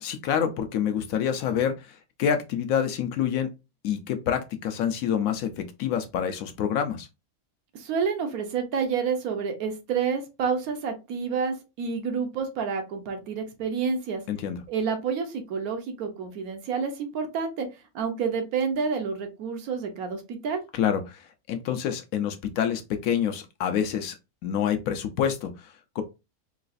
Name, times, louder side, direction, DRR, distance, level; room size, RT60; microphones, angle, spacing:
voice 1, 0.0-3.5 3.8-7.1 14.3-14.6 20.7-24.2 24.4-26.0, left 8 dB, 70° left, 0.9 m, -27 dB
voice 2, 7.7-14.2 14.7-17.7 17.9-20.6, right 6 dB, 75° right, 1.2 m, -29 dB
3.9 x 2.4 x 2.4 m
omnidirectional pair, 1.6 m